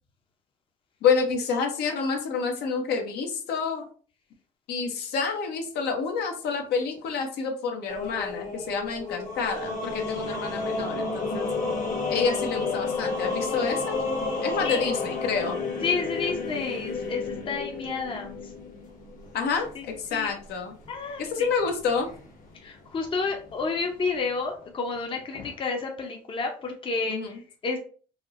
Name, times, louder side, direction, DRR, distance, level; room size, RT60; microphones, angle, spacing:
voice 1, 1.0-3.8 4.7-11.5 12.1-14.0 14.4-15.6 19.3-19.7 20.0-20.7 21.3-22.1 27.1-27.3, left 5 dB, 75° left, 3 dB, 0.8 m, -28 dB
sound 1, 7.9-24.1, left 3 dB, 50° left, 1.1 m, -32 dB
voice 2, 14.6-14.9 15.8-18.5 19.7-19.8 20.1-20.3 20.9-21.5 22.6-27.8, left 4 dB, 30° left, 3 dB, 0.6 m, -30 dB
4.2 x 2.0 x 2.4 m, 0.41 s
cardioid pair, 110°, 17 cm